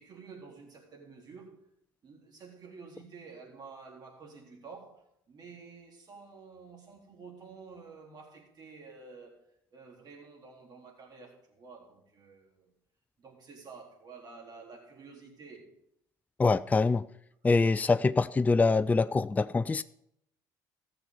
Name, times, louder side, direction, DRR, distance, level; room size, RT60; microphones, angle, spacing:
voice 1, 0.0-1.6 2.0-12.7 13.2-15.7 17.1-17.2, right 4 dB, 50° right, 3.9 m, -50 dB
voice 2, 16.4-17.1 17.4-19.8, left 3 dB, 15° left, 0.4 m, -24 dB
15.5 x 6.9 x 5.3 m
hypercardioid pair, 65°, 9 cm